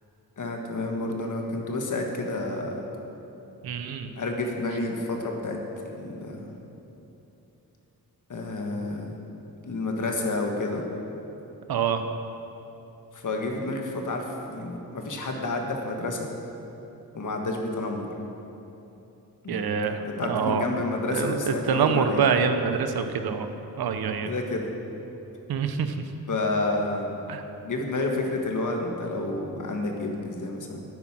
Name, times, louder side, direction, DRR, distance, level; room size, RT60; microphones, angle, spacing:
voice 1, 0.4-2.8 4.1-5.6 6.0-6.5 8.3-9.1 9.6-10.8 13.1-16.3 17.1-18.1 19.4-19.8 20.0-22.2 24.2-24.7 26.3-27.2 27.6-30.8, left 2 dB, 55° left, 2 dB, 1.7 m, -30 dB
voice 2, 3.6-4.1 11.7-12.0 19.5-20.6 21.1-23.5 23.8-24.3 25.5-25.9 27.3-27.4, right 6 dB, 75° right, 8 dB, 0.8 m, -25 dB
9.5 x 9.1 x 6.1 m, 3.0 s
cardioid pair, 90°, 37 cm